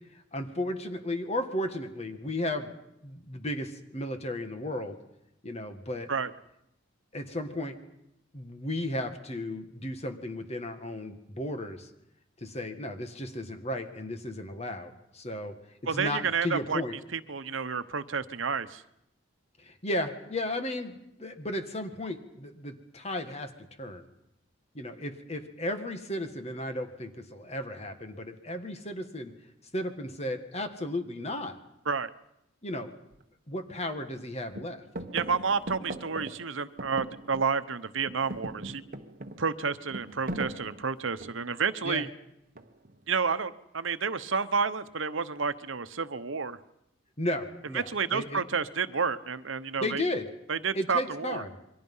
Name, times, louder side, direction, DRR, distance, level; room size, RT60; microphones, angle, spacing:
voice 1, 0.1-2.7 3.0-5.0 5.4-6.1 7.1-7.8 8.3-11.9 12.4-15.5 15.8-17.0 19.6-23.5 23.8-24.0 24.7-29.4 29.7-31.6 32.6-32.9 33.5-34.8 41.8-42.1 47.2-48.4 49.8-50.3 50.7-51.6, left 1 dB, 30° left, 7 dB, 1.9 m, -34 dB
voice 2, 15.9-16.8 17.1-18.8 31.9-32.1 35.1-38.8 39.4-42.1 43.1-46.6 47.9-50.0 50.5-51.4, right 5 dB, 75° right, 12 dB, 1.0 m, -30 dB
sound 1, 33.1-33.2 33.7-34.2 34.5-37.7 38.0-41.6 42.6-43.0, right 1 dB, 45° right, 1.3 m, -40 dB
29.0 x 23.0 x 5.7 m, 0.81 s
head